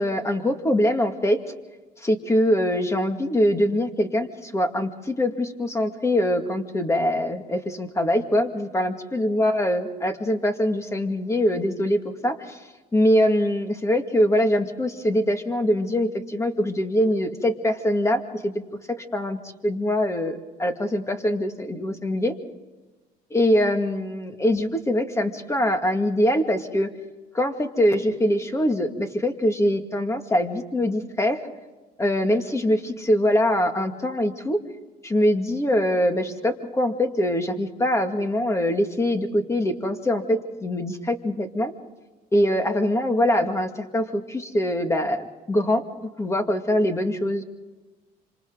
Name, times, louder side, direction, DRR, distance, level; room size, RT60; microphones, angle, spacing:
voice 1, 0.0-1.4 2.0-12.6 12.9-18.5 18.9-19.4 19.6-22.3 23.3-26.9 27.3-31.4 32.0-34.6 35.0-41.7 42.3-45.8 46.2-47.4, left 1 dB, 15° left, 6 dB, 2.1 m, -23 dB
27.0 x 26.5 x 3.9 m, 1.2 s
cardioid pair, 110°, 17 cm